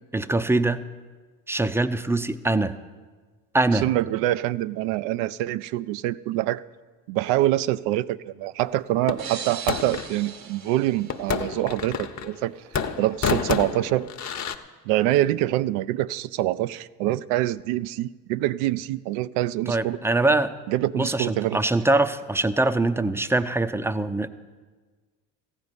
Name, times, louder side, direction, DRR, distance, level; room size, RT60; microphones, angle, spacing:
voice 1, 0.1-0.8 1.5-2.8 3.5-3.9 19.7-20.5 21.0-24.3, right 2 dB, 5° right, 11 dB, 0.5 m, -23 dB
voice 2, 3.7-6.6 7.1-12.6 13.0-14.1 14.9-20.0 20.7-21.6, right 15 dB, 75° right, 16 dB, 0.5 m, -25 dB
sound 1, 9.1-10.1 11.1-12.4 12.7-14.5, left 7 dB, 40° left, 0.9 m, -29 dB
sound 2, 9.2-12.0, right 7 dB, 55° right, 1.3 m, -39 dB
15.0 x 5.4 x 9.8 m, 1.4 s
hypercardioid pair, 65°, 44 cm